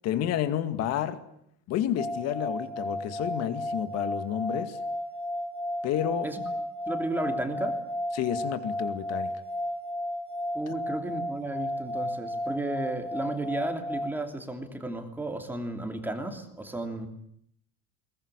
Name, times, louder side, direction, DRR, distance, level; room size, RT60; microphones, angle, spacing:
voice 1, 0.0-1.2 1.7-4.8 5.8-6.3 8.1-9.3 10.7-10.8, left 10 dB, 45° left, 10 dB, 2.2 m, -30 dB
sound 1, 2.0-14.1, left 1 dB, 15° left, 2.0 m, -33 dB
voice 2, 6.9-7.8 10.5-17.1, right 2 dB, 5° right, 4 dB, 2.9 m, -33 dB
22.0 x 20.5 x 10.0 m, 0.70 s
cardioid pair, 165°, 35 cm